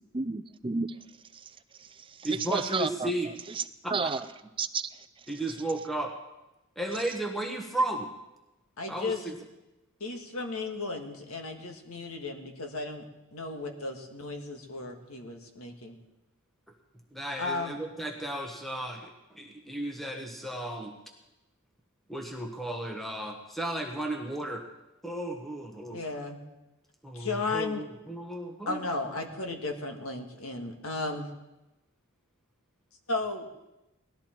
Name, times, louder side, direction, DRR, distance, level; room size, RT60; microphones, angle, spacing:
voice 1, 0.1-1.0 1.3-1.5 1.8-3.1 3.5-3.7 3.9-4.3 4.6-4.9 5.3-5.4, right 4 dB, 25° right, 12 dB, 0.5 m, -32 dB
voice 2, 2.2-3.3 3.8-4.1 5.3-6.1 6.8-8.1 8.9-9.3 17.1-20.9 22.1-24.6 25.0-26.0 27.0-28.8, right 1 dB, ahead, 2 dB, 1.2 m, -34 dB
voice 3, 8.8-9.3 10.0-13.1 13.3-16.0 17.4-17.8 25.9-26.4 27.1-27.8 28.7-31.3 33.1-33.5, left 3 dB, 75° left, 3 dB, 1.8 m, -34 dB
18.5 x 13.0 x 4.5 m, 0.98 s
head